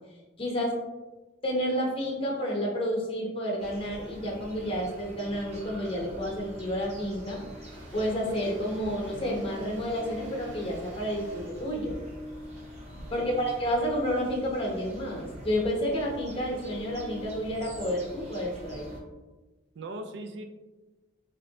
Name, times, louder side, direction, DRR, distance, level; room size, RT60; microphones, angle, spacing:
voice 1, 0.4-0.8 1.4-7.4 7.9-12.0 13.1-19.0, equal, 30° left, -1 dB, 0.8 m, -30 dB
sound 1, 3.6-19.0, equal, 35° right, 0.8 m, -44 dB
Engine / Drill, 7.2-13.4, equal, 80° right, 0.8 m, -51 dB
voice 2, 13.0-13.5 19.8-20.4, right 1 dB, 65° right, 7 dB, 0.4 m, -40 dB
3.1 x 2.9 x 2.7 m, 1.2 s
head